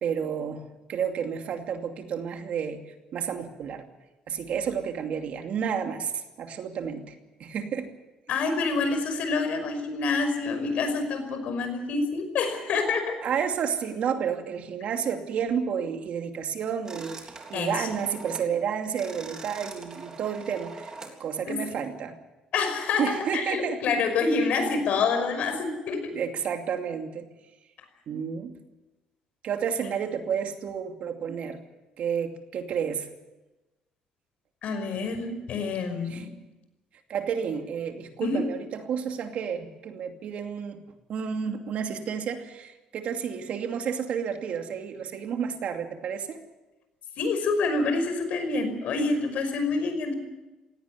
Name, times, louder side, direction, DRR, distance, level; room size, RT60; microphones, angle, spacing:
voice 1, 0.0-3.9 4.3-7.1 7.4-7.9 13.2-20.9 21.2-22.2 23.0-23.8 26.1-27.3 28.1-28.5 29.4-31.6 32.0-33.1 36.1-36.2 37.1-40.8 41.1-46.4, right 7 dB, 60° right, 5 dB, 2.6 m, -31 dB
voice 2, 8.3-13.2 17.5-17.9 21.5-21.6 22.5-26.1 34.6-36.3 38.2-38.4 47.2-50.2, left 4 dB, 65° left, 7 dB, 5.6 m, -27 dB
sound 1, 16.9-18.5 18.8-21.2, right 3 dB, 30° right, 3.7 m, -43 dB
18.0 x 17.5 x 9.8 m, 1.1 s
cardioid pair, 120°, 3 cm